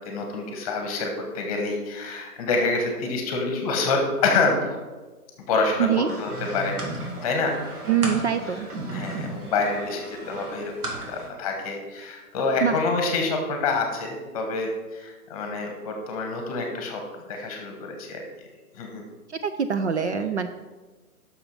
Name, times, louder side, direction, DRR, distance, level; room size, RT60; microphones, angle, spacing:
voice 1, 0.0-4.8 5.4-7.6 8.4-8.6 8.9-18.2 18.7-19.0, left 3 dB, 25° left, 3 dB, 1.1 m, -27 dB
sound 1, 6.1-11.3, right 2 dB, 75° right, 2.3 m, -35 dB
voice 2, 7.9-8.7 12.6-12.8 19.3-20.5, right 7 dB, 50° right, 9 dB, 0.5 m, -24 dB
6.5 x 6.3 x 5.4 m, 1.3 s
hypercardioid pair, 150°, 45 cm